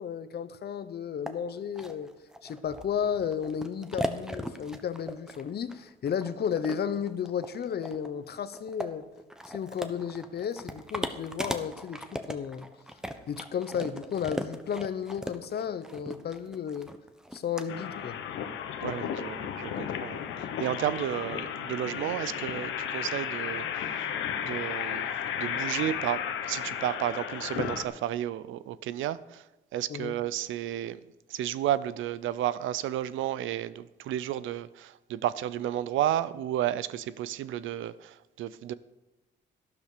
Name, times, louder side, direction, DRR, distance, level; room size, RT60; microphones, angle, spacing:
voice 1, 0.0-2.1 2.4-9.0 9.5-12.7 13.3-16.9 17.3-18.2 29.9-30.1, left 8 dB, 55° left, 1.0 m, -33 dB
sound 1, 1.3-1.4 1.8-17.6, equal, 5° right, 1.2 m, -38 dB
sound 2, 17.7-27.8, left 8 dB, 85° left, 1.3 m, -34 dB
voice 2, 18.8-25.1 25.4-29.4 29.7-31.0 31.3-38.7, right 12 dB, 80° right, 0.6 m, -32 dB
12.0 x 12.0 x 5.0 m
cardioid pair, 90°, 20 cm